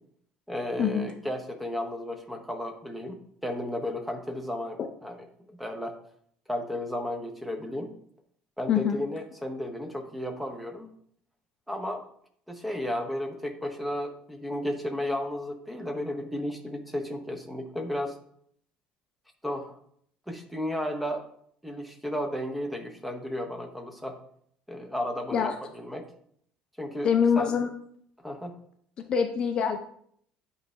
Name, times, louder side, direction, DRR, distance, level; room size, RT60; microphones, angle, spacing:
voice 1, 0.5-3.2 3.4-5.2 5.5-5.9 6.5-7.9 8.6-10.9 11.7-12.1 12.5-18.2 19.4-19.8 20.3-21.3 21.6-24.2 24.7-26.0 26.8-27.1 27.4-27.5 28.2-28.6, left 1 dB, ahead, 5 dB, 0.8 m, -33 dB
voice 2, 27.0-27.7 29.1-29.8, left 7 dB, 30° left, 6 dB, 0.5 m, -24 dB
8.4 x 3.2 x 5.4 m, 0.65 s
cardioid pair, 160°, 3 cm